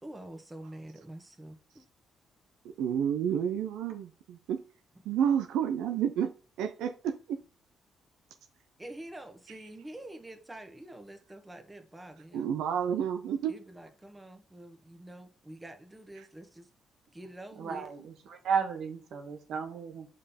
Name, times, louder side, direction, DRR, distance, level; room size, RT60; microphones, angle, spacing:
voice 1, 0.0-1.8 8.8-12.5 13.5-16.7 17.1-17.9, right 1 dB, 15° right, 1.4 m, -46 dB
voice 2, 2.8-4.6 5.0-6.3 6.6-7.4 12.3-13.5, right 8 dB, 90° right, 0.6 m, -30 dB
voice 3, 17.6-20.1, right 6 dB, 70° right, 1.5 m, -34 dB
5.4 x 5.2 x 4.2 m
cardioid pair, 90°, 0 cm